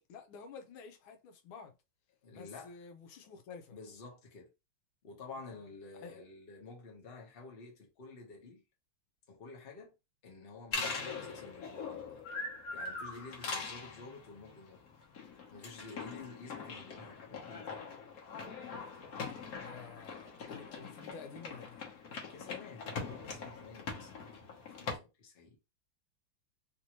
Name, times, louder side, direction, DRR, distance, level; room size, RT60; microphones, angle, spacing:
voice 1, 0.0-1.7 2.3-3.7 5.3-6.3 19.5-21.9, left 5 dB, 90° left, 1.5 m, -51 dB
voice 2, 2.2-2.7 3.2-3.3 3.7-4.5 5.0-8.6 9.3-9.9 10.2-12.2 12.7-14.8 15.5-17.9 22.3-25.6, left 4 dB, 40° left, 1.0 m, -51 dB
sound 1, 10.7-25.0, left 4 dB, 55° left, 1.2 m, -42 dB
3.6 x 2.7 x 2.9 m
omnidirectional pair, 2.2 m